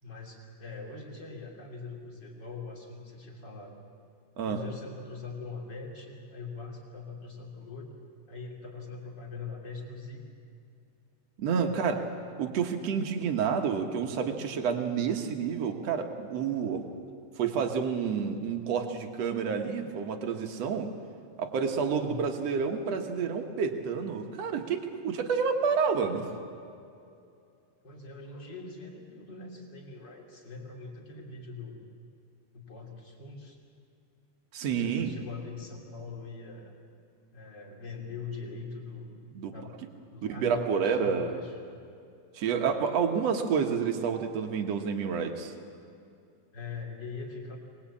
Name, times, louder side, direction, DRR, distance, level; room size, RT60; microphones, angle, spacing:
voice 1, 0.0-3.8 4.5-7.9 8.3-10.2 11.6-12.3 21.9-22.3 27.8-31.8 32.5-33.6 34.6-36.7 37.3-39.2 39.5-39.7 40.1-41.6 46.5-47.6, left 4 dB, 30° left, -1 dB, 3.5 m, -42 dB
voice 2, 11.4-12.0 12.4-16.8 17.4-20.9 21.4-26.3 34.5-35.1 39.3-39.5 40.3-41.4 42.3-45.5, right 6 dB, 65° right, 4 dB, 1.7 m, -29 dB
23.5 x 20.5 x 8.6 m, 2.5 s
omnidirectional pair, 4.8 m